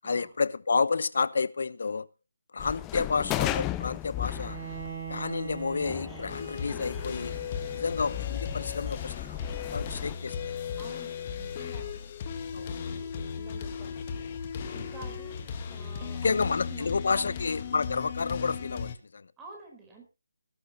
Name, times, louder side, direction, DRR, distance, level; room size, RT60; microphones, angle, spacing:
voice 1, 0.0-2.1 2.5-4.6 5.1-7.3 7.7-9.4 9.7-10.6 12.5-12.7 16.2-19.3, left 4 dB, 60° left, 0.8 m, -30 dB
sound 1, 2.6-10.1, left 16 dB, 15° left, 0.6 m, -36 dB
Bowed string instrument, 4.2-10.3, right 7 dB, 30° right, 4.2 m, -44 dB
sound 2, 6.3-18.9, left 6 dB, 30° left, 1.8 m, -36 dB
voice 2, 10.8-12.0 12.5-14.2 14.7-17.4 19.4-20.1, right 3 dB, 10° right, 4.9 m, -49 dB
18.0 x 11.0 x 3.2 m
figure-of-eight pair, 155°, 0 cm